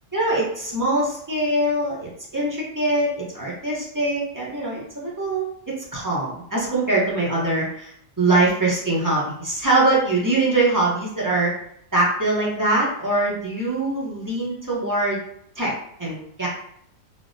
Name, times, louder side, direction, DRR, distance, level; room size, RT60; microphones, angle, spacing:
voice 1, 0.1-5.5 5.9-11.5 11.9-15.2 15.6-15.7 16.0-16.5, right 2 dB, 30° right, -6 dB, 0.3 m, -23 dB
3.3 x 2.0 x 2.5 m, 0.69 s
omnidirectional pair, 1.4 m